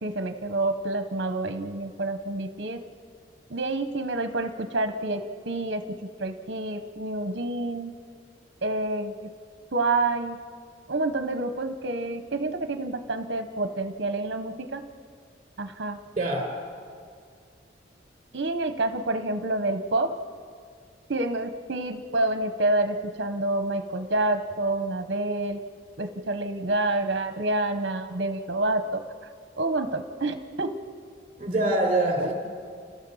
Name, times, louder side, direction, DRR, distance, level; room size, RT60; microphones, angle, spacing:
voice 1, 0.0-2.8 3.5-7.9 8.6-9.3 9.7-10.4 10.9-14.8 15.6-16.0 18.3-20.1 21.1-25.6 26.0-29.0 29.6-30.7 32.2-32.3, right 2 dB, 60° right, 8 dB, 0.9 m, -28 dB
voice 2, 16.2-16.5 31.4-32.3, right 2 dB, 30° right, -1 dB, 4.0 m, -24 dB
30.0 x 14.0 x 7.0 m, 2.2 s
head